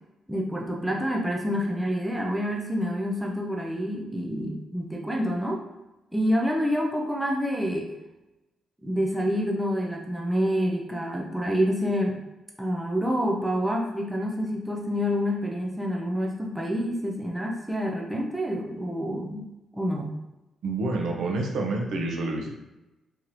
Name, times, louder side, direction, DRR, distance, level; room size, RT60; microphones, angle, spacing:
voice 1, 0.3-5.6 6.1-7.9 8.8-12.2 12.6-19.5 19.7-20.2, equal, 5° right, -1 dB, 0.4 m, -27 dB
voice 2, 20.6-22.5, right 2 dB, 70° right, 1 dB, 0.7 m, -28 dB
3.8 x 2.7 x 3.0 m, 0.99 s
cardioid pair, 150°, 0 cm